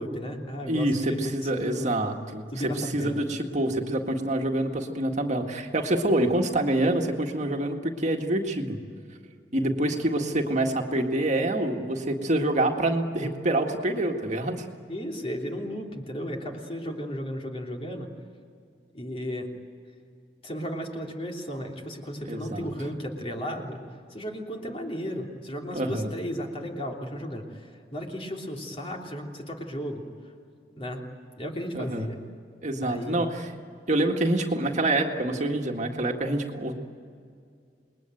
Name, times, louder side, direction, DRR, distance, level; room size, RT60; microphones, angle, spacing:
voice 1, 0.0-1.9 2.5-3.2 14.9-18.1 18.9-19.5 20.4-23.8 24.1-30.0 30.8-31.0 31.4-32.2 32.8-33.3, equal, 35° left, 1 dB, 3.2 m, -34 dB
voice 2, 0.7-8.8 9.5-14.7 22.2-22.7 25.7-26.1 31.7-32.1 32.6-33.5 33.9-36.7, right 1 dB, 40° right, 3 dB, 1.9 m, -26 dB
28.5 x 21.0 x 9.2 m, 2.3 s
head